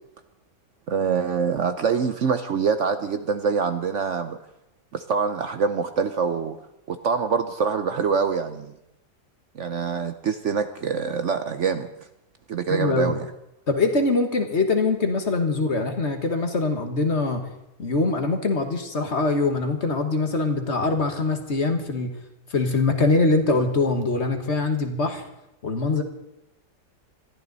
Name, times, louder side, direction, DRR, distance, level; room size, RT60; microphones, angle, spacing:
voice 1, 0.9-4.4 4.9-6.6 6.9-8.7 9.5-11.9 12.5-13.3, right 6 dB, 55° right, 9 dB, 0.9 m, -25 dB
voice 2, 12.7-13.1 13.7-17.5 17.8-22.1 22.5-25.3 25.6-26.0, left 3 dB, 45° left, 6 dB, 1.7 m, -23 dB
21.5 x 14.0 x 4.0 m, 0.88 s
omnidirectional pair, 1.7 m